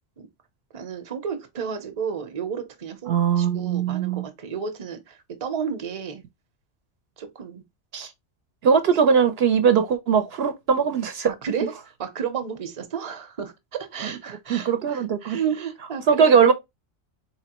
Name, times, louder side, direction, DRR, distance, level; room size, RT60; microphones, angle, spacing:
voice 1, 0.7-6.2 7.2-7.6 11.3-16.3, right 7 dB, 35° right, 0.7 m, -32 dB
voice 2, 3.1-4.3 7.9-8.1 8.6-11.3 11.6-11.7 14.5-15.4 16.1-16.5, right 6 dB, 70° right, 0.8 m, -20 dB
4.2 x 2.8 x 2.8 m
omnidirectional pair, 1.1 m